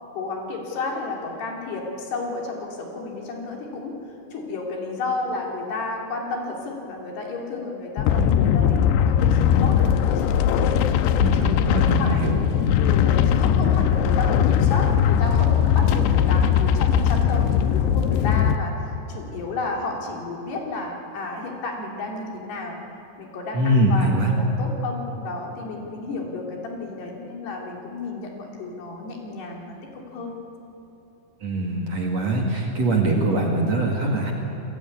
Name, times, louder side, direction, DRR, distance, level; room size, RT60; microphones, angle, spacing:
voice 1, 0.1-3.9 4.3-10.8 11.5-12.3 12.8-22.8 23.2-24.1 24.4-30.4, left 3 dB, 70° left, 0 dB, 5.1 m, -32 dB
sound 1, 8.0-18.6, left 8 dB, 85° left, 3.0 m, -19 dB
voice 2, 11.2-12.4 23.5-24.3 31.4-34.3, right 1 dB, 45° right, 0 dB, 2.9 m, -23 dB
28.5 x 20.5 x 9.6 m, 3.0 s
omnidirectional pair, 5.0 m